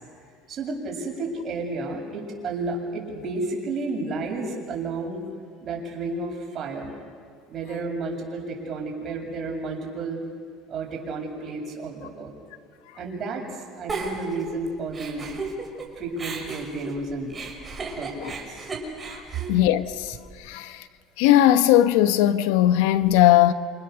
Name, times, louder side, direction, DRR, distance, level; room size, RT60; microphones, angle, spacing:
voice 1, 0.5-5.2 5.6-6.9 7.5-10.2 10.7-12.3 13.0-15.3 16.0-17.4 18.0-18.7, right 3 dB, 45° right, 7.7 m, -32 dB
Giggle, 13.9-15.9 16.2-20.4, right 3 dB, 25° right, 5.7 m, -35 dB
voice 2, 19.5-20.1 20.5-20.8 21.2-23.5, left 12 dB, 85° left, 1.1 m, -18 dB
28.5 x 28.0 x 6.9 m
supercardioid pair, 110°, 0 cm